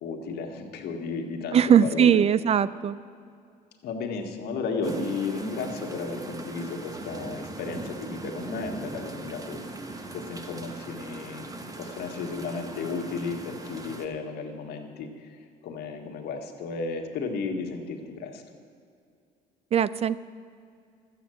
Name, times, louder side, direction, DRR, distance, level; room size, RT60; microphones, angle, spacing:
voice 1, 0.0-2.2 3.8-9.6 10.1-11.5 11.8-15.4 15.6-18.4, left 4 dB, 70° left, 2 dB, 1.7 m, -34 dB
voice 2, 1.5-3.0 19.7-20.2, right 8 dB, 40° right, 17 dB, 0.3 m, -20 dB
sound 1, 4.8-14.1, right 2 dB, 20° right, 1.1 m, -39 dB
12.5 x 8.1 x 7.7 m, 2.3 s
cardioid pair, 110°, 17 cm